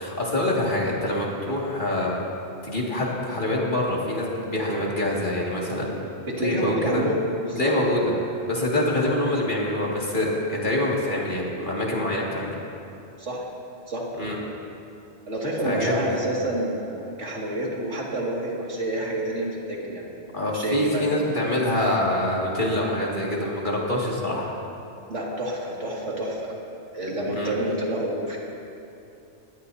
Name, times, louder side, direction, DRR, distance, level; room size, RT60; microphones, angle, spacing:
voice 1, 0.0-2.1 2.6-5.9 6.4-7.0 7.6-8.0 8.5-12.6 14.2-14.4 15.6-16.2 20.3-24.5 27.3-27.5, left 1 dB, 45° left, -4 dB, 2.4 m, -25 dB
voice 2, 6.3-8.0 13.2-13.4 13.9-14.0 15.3-21.2 25.1-26.5 26.9-28.4, right 1 dB, 80° right, -3 dB, 2.6 m, -28 dB
21.0 x 17.0 x 2.8 m, 2.7 s
omnidirectional pair, 1.2 m